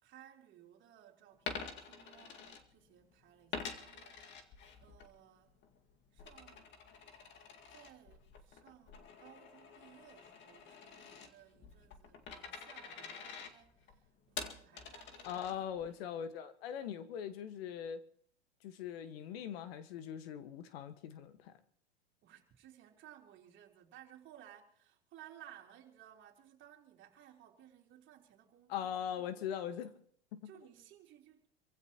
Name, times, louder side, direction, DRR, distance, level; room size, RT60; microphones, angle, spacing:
voice 1, 0.0-5.6 6.1-6.8 7.7-15.7 16.0-16.2 22.2-29.3 30.4-31.5, right 11 dB, 35° right, 3.7 m, -59 dB
Coin (dropping), 1.3-3.1 3.5-5.1 5.5-15.9, left 5 dB, 35° left, 2.1 m, -48 dB
voice 2, 15.2-18.0 18.6-21.5 28.7-29.9 30.3-30.4, left 9 dB, 65° left, 1.6 m, -41 dB
27.0 x 15.5 x 3.0 m
hypercardioid pair, 115°, 32 cm